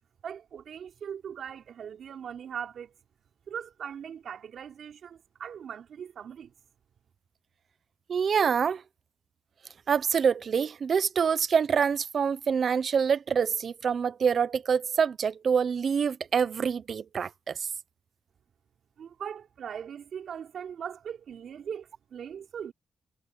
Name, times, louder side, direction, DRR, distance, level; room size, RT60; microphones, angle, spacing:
voice 1, 0.2-2.9 3.5-6.5 19.0-22.7, right 8 dB, 65° right, 4.6 m, -40 dB
voice 2, 8.1-8.8 9.9-17.6, right 6 dB, 45° right, 0.8 m, -26 dB
wide cardioid pair, 160°, 0 cm